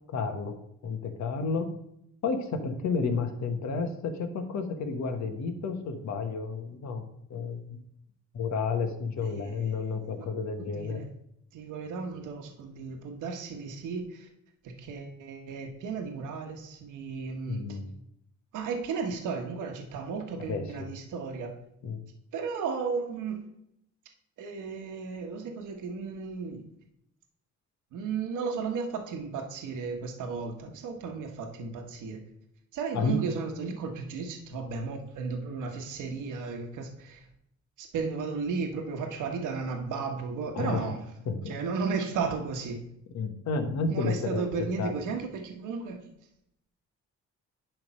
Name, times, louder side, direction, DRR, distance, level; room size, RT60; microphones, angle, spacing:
voice 1, 0.1-1.7 2.2-7.0 7.3-7.8 8.3-11.0 17.5-17.9 20.4-20.9 21.8-22.0 32.9-33.2 40.5-40.9 41.2-41.5 43.1-44.9, left 4 dB, 65° left, 6 dB, 1.3 m, -31 dB
voice 2, 9.2-10.3 10.6-11.1 11.5-14.3 14.6-17.8 18.5-21.5 22.3-23.4 24.4-26.6 27.9-32.2 32.7-37.2 37.8-41.0 41.5-42.8 43.9-46.0, right 5 dB, 85° right, 4 dB, 1.3 m, -34 dB
10.5 x 3.5 x 5.5 m, 0.77 s
cardioid pair, 90°, 30 cm